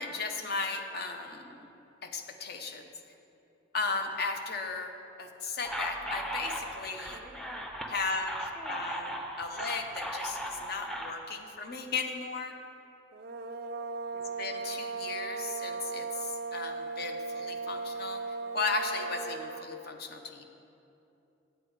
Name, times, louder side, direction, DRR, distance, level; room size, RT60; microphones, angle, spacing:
voice 1, 0.0-1.7 2.0-2.8 3.7-4.9 5.2-7.2 7.9-12.5 14.1-18.2 18.5-20.4, left 4 dB, 50° left, 5 dB, 0.7 m, -36 dB
sound 1, 5.6-11.1, right 1 dB, ahead, 0.5 m, -37 dB
sound 2, 13.1-19.7, right 4 dB, 50° right, 0.4 m, -37 dB
8.8 x 8.3 x 4.7 m, 2.9 s
head